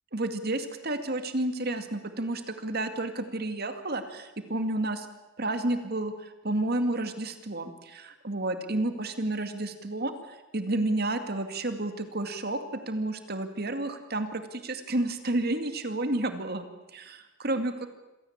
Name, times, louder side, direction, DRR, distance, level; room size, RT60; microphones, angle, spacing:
voice 1, 0.1-5.1 5.4-16.6 16.9-17.7, right 2 dB, 50° right, 8 dB, 2.3 m, -31 dB
26.0 x 17.5 x 8.8 m, 1.1 s
head